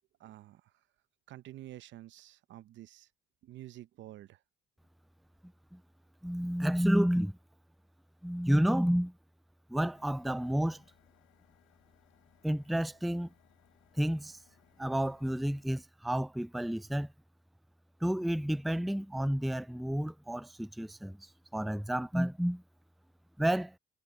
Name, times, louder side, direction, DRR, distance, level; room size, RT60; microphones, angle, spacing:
voice 1, 0.2-0.7 1.3-3.1 3.4-4.4, right 14 dB, 70° right, 0.8 m, -49 dB
voice 2, 6.2-7.4 8.2-9.1 9.7-10.8 12.4-13.3 14.0-14.4 14.8-17.1 18.0-22.6 23.4-23.7, equal, ahead, 0.4 m, -30 dB
Printer, 9.8-15.7, left 18 dB, 85° left, 7.0 m, -68 dB
supercardioid pair, 60°, 20 cm